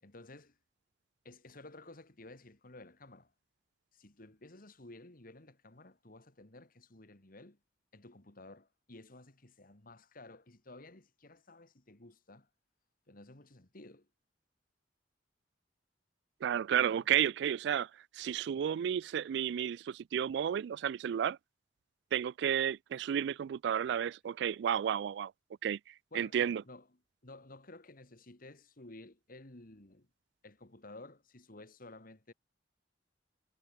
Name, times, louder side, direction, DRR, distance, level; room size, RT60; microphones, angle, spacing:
voice 1, 0.0-0.6 1.2-3.3 3.9-7.6 7.9-12.5 13.1-14.1 16.9-17.1 26.1-26.9 27.2-30.1 30.4-32.3, left 2 dB, 50° left, 2.4 m, -54 dB
voice 2, 16.4-21.4 22.1-25.3 25.6-25.8 26.1-26.6, right 9 dB, 65° right, 0.3 m, -32 dB
head